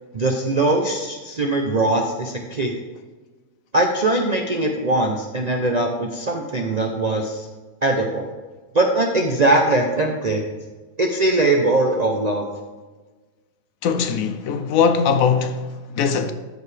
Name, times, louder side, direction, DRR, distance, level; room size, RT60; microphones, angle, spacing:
voice 1, 0.1-2.7 3.7-7.5 7.8-8.3 8.7-10.4 11.0-12.5, right 2 dB, 50° right, 0.5 m, -21 dB
voice 2, 13.8-16.3, left 6 dB, 70° left, 1.0 m, -20 dB
13.0 x 4.7 x 3.3 m
omnidirectional pair, 1.5 m